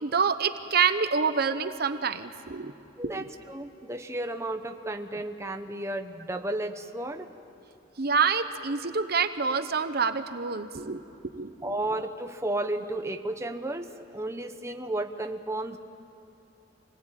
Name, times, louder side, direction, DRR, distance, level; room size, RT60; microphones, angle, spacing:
voice 1, 0.0-2.7 3.1-3.2 8.0-11.0 11.3-11.7, right 5 dB, 55° right, 10 dB, 0.9 m, -27 dB
voice 2, 3.0-7.3 11.6-15.8, right 1 dB, 15° right, 5 dB, 0.9 m, -33 dB
26.5 x 19.5 x 9.0 m, 2.9 s
head